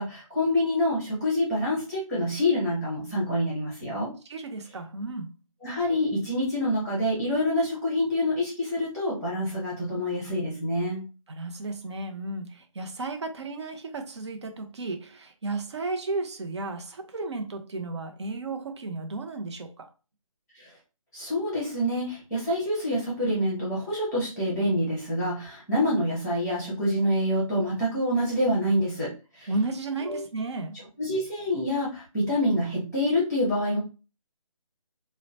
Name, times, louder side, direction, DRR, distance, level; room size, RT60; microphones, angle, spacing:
voice 1, 0.0-4.1 5.6-11.0 20.6-20.7 21.1-29.5 30.0-30.2 31.0-33.8, left 1 dB, ahead, 0.8 m, -26 dB
voice 2, 4.3-5.3 11.3-19.9 29.5-30.8, right 3 dB, 55° right, 0.6 m, -33 dB
2.8 x 2.1 x 2.7 m
figure-of-eight pair, 160°, 18 cm